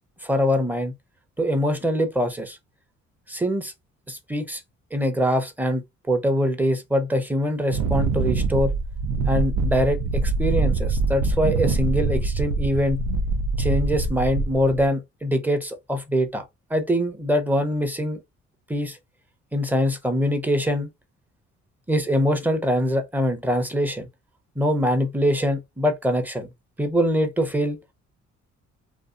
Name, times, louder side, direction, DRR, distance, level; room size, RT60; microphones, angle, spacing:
voice 1, 0.2-0.9 1.4-2.6 3.3-3.7 4.1-4.6 4.9-8.7 9.3-13.0 13.6-16.4 16.7-18.2 18.7-19.0 19.5-20.9 21.9-24.1 24.6-26.5 26.8-27.8, equal, 5° right, 0.6 m, -23 dB
Wind, 7.7-14.8, right 3 dB, 85° right, 0.6 m, -24 dB
2.6 x 2.4 x 2.4 m
cardioid pair, 90°, 30 cm